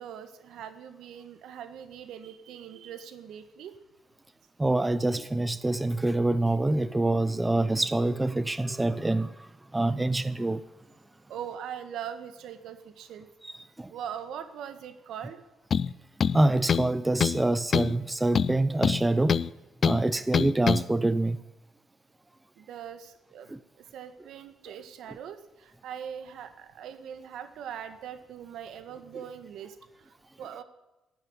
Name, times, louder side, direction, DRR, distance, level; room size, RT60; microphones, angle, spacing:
voice 1, 0.0-3.7 11.3-13.3 13.9-15.4 22.6-23.6 23.9-30.1 30.4-30.6, right 9 dB, 80° right, 1.7 m, -41 dB
voice 2, 4.6-9.3 9.7-10.6 13.4-13.5 13.8-13.9 16.3-19.4 19.8-21.4 23.5-23.6, right 2 dB, 15° right, 0.8 m, -25 dB
sound 1, 15.7-15.9 16.2-16.9 17.2-17.4 17.7-18.0 18.3-19.5 19.8-20.0 20.3-20.8, left 7 dB, 50° left, 0.5 m, -25 dB
15.5 x 8.9 x 9.9 m
cardioid pair, 90°, 0 cm